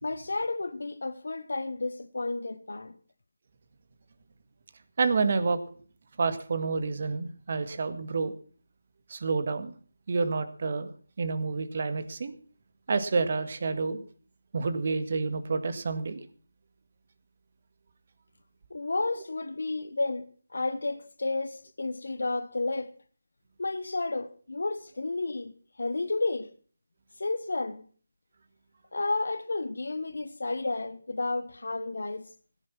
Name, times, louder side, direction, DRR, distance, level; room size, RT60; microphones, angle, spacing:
voice 1, 0.0-3.0 18.7-23.0 23.6-26.5 27.2-27.8 28.9-32.3, left 3 dB, 70° left, 1.2 m, -32 dB
voice 2, 5.0-5.6 6.2-8.3 9.1-9.7 10.1-10.9 11.2-12.4 12.9-14.0 14.5-16.2, right 4 dB, 50° right, 1.8 m, -28 dB
16.5 x 10.5 x 5.9 m
figure-of-eight pair, 160°, 0 cm